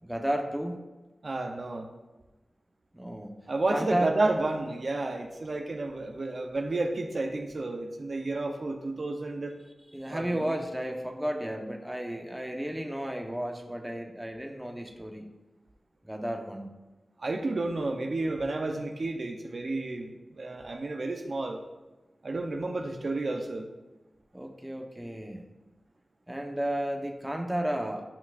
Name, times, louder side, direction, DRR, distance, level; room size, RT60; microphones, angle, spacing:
voice 1, 0.0-0.8 2.9-3.3 3.7-4.1 9.9-15.3 16.0-16.7 24.3-25.4 26.3-28.0, right 1 dB, 10° right, 2 dB, 1.0 m, -33 dB
voice 2, 1.2-1.9 3.5-9.5 10.1-10.4 17.2-21.6 22.2-23.7, right 2 dB, 60° right, 3 dB, 0.7 m, -31 dB
11.5 x 5.8 x 2.5 m, 1.1 s
wide cardioid pair, 75°, 0 cm